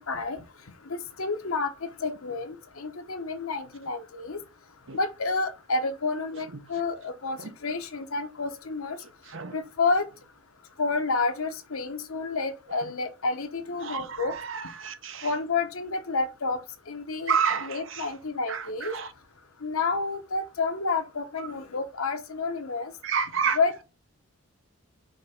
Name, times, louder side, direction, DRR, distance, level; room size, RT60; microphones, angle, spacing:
voice 1, 0.1-0.4 0.9-4.4 4.9-7.4 7.6-9.0 9.5-10.1 10.8-14.3 15.2-16.6 16.9-17.3 17.6-18.9 19.6-22.9 23.6-23.8, left 3 dB, 75° left, 0.9 m, -29 dB
voice 2, 9.2-9.6 12.8-12.9 13.8-15.3 17.3-18.1 18.5-19.1 21.4-21.5 23.0-23.6, right 6 dB, 60° right, 0.7 m, -30 dB
5.2 x 3.3 x 5.4 m
head